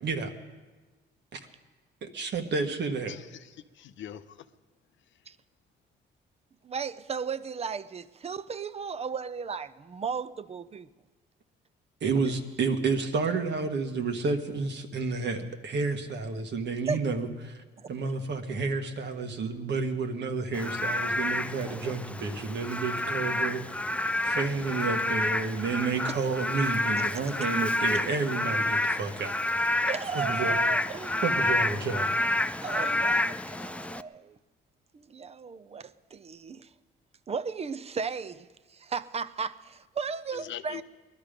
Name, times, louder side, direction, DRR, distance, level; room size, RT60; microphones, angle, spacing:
voice 1, 2.0-3.2 12.0-17.6 17.9-23.6 24.2-29.4 30.1-30.6 31.2-32.1, right 4 dB, 60° right, 1.6 m, -30 dB
voice 2, 3.1-4.5 40.3-40.8, left 10 dB, 70° left, 0.8 m, -42 dB
voice 3, 6.6-10.9 16.9-17.0 17.8-18.1 26.2-26.3 26.9-27.1 27.4-27.5 29.8-31.3 32.6-34.4 34.9-36.7 37.3-40.8, right 5 dB, 30° right, 0.6 m, -35 dB
Frog / Rain, 20.5-34.0, left 1 dB, 5° left, 0.4 m, -29 dB
20.0 x 12.0 x 5.2 m
cardioid pair, 90°, 20 cm